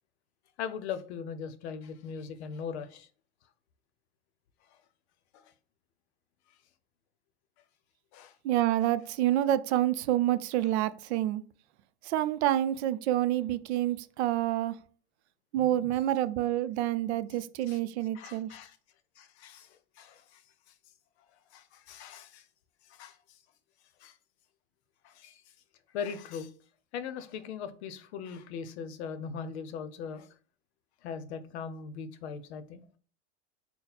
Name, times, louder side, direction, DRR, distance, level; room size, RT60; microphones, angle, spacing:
voice 1, 0.6-3.1 5.3-5.5 8.1-8.4 15.6-15.9 17.7-17.8 18.1-18.8 19.2-20.4 21.5-22.5 22.8-23.4 24.0-24.2 25.0-25.4 25.9-26.5 26.9-30.3 31.0-33.0, left 6 dB, 85° left, 0.7 m, -40 dB
voice 2, 8.4-11.4 12.0-14.8 15.5-18.5, right 13 dB, 85° right, 0.5 m, -28 dB
4.1 x 2.1 x 4.1 m
supercardioid pair, 145°, 32 cm